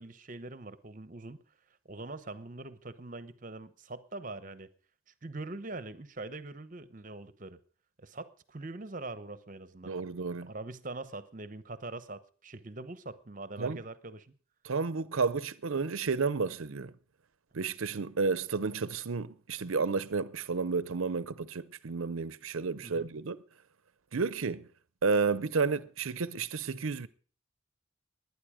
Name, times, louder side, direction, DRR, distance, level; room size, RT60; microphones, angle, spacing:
voice 1, 0.0-1.4 1.8-4.7 5.2-7.6 8.0-9.9 10.4-14.3 22.8-23.1, right 2 dB, 40° right, 0.9 m, -43 dB
voice 2, 9.9-10.5 13.6-13.8 14.6-16.9 17.5-23.4 24.1-24.6 25.0-27.1, right 4 dB, 75° right, 0.7 m, -31 dB
20.5 x 9.7 x 5.0 m
head